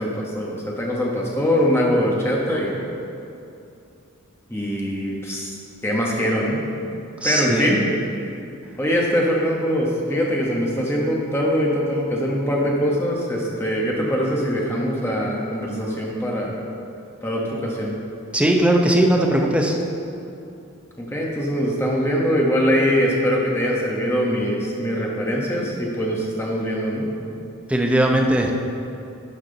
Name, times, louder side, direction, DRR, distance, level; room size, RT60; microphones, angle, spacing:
voice 1, 0.0-2.7 4.5-5.6 5.8-6.6 7.2-7.8 8.8-16.5 17.2-18.0 21.0-27.1, equal, 10° left, -3 dB, 1.1 m, -22 dB
voice 2, 7.2-7.7 18.3-19.8 27.7-28.5, right 1 dB, 5° right, 0 dB, 0.6 m, -18 dB
11.0 x 5.9 x 3.9 m, 2.7 s
head